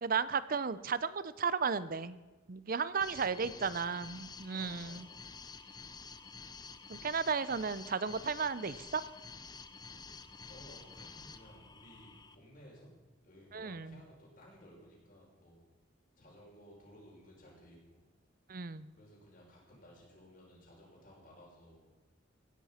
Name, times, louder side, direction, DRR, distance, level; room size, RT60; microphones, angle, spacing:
voice 1, 0.0-2.2 2.5-5.1 6.9-9.0 13.5-14.0 18.5-18.9, right 5 dB, 50° right, 16 dB, 0.6 m, -34 dB
sound 1, 3.0-12.3, left 5 dB, 20° left, 0.7 m, -50 dB
voice 2, 3.1-4.0 4.5-5.3 10.2-12.9 13.2-15.7 16.2-18.0 18.9-21.9, equal, 45° left, -3 dB, 5.7 m, -57 dB
17.0 x 10.5 x 5.8 m, 1.2 s
head